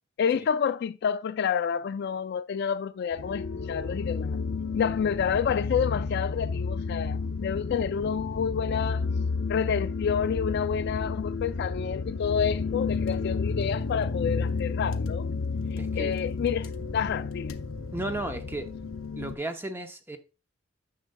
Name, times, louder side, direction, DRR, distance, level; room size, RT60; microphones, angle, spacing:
voice 1, 0.2-4.4 4.7-9.0 9.5-15.3 15.9-17.6, left 7 dB, 55° left, 0.3 m, -29 dB
sound 1, 3.1-19.3, left 4 dB, 90° left, 0.7 m, -31 dB
voice 2, 15.8-16.2 17.9-18.7 19.2-20.2, right 2 dB, 10° right, 0.8 m, -34 dB
9.7 x 6.5 x 2.2 m
head